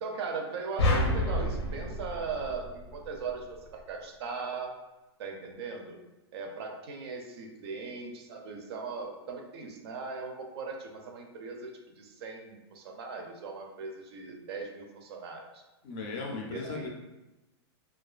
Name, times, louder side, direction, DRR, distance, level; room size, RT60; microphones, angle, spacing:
voice 1, 0.0-4.7 5.2-6.0 6.3-15.6 16.5-16.9, right 4 dB, 65° right, 3 dB, 0.4 m, -39 dB
sound 1, 0.8-3.2, left 1 dB, 90° left, 0.6 m, -29 dB
voice 2, 15.8-16.9, left 3 dB, 30° left, 0 dB, 0.4 m, -37 dB
2.4 x 2.3 x 2.3 m, 1.0 s
supercardioid pair, 160°, 14 cm